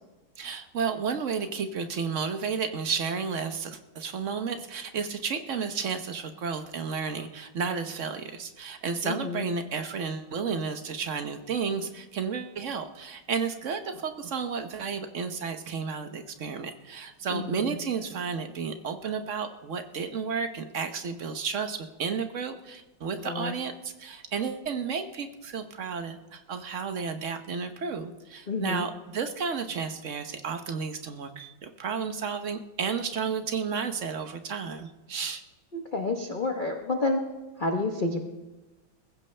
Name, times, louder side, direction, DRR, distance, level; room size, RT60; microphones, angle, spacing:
voice 1, 0.4-35.4, right 5 dB, 50° right, 8 dB, 1.0 m, -32 dB
voice 2, 9.0-9.5 17.3-17.7 23.2-23.5 28.5-28.9 35.7-37.2 37.6-38.2, left 3 dB, 35° left, 3 dB, 0.9 m, -29 dB
21.5 x 15.0 x 3.3 m, 1.1 s
omnidirectional pair, 2.2 m